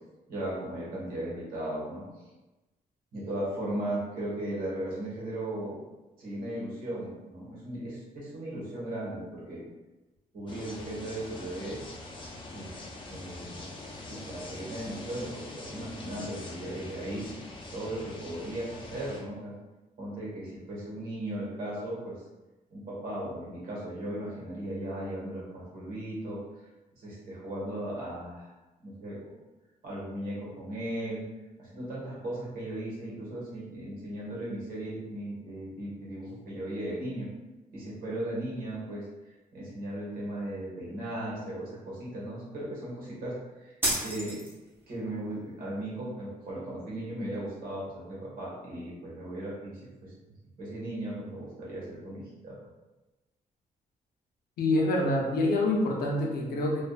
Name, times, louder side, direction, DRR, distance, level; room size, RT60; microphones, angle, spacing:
voice 1, 0.3-2.0 3.1-5.8 6.2-9.6 10.3-11.8 12.5-13.7 14.1-17.2 17.7-19.5 20.0-22.2 22.7-26.4 26.9-28.5 28.8-29.2 29.8-31.2 31.6-37.3 37.7-39.1 39.5-43.3 43.6-44.4 44.9-50.1 50.6-52.6, right 1 dB, 75° right, -6 dB, 1.1 m, -37 dB
sound 1, 10.5-19.2, left 2 dB, 35° left, 0.4 m, -43 dB
sound 2, 43.8-44.8, right 1 dB, 15° right, 0.6 m, -31 dB
voice 2, 54.6-56.8, left 2 dB, 85° left, 0 dB, 0.5 m, -26 dB
2.5 x 2.3 x 2.3 m, 1.1 s
wide cardioid pair, 155°, 15 cm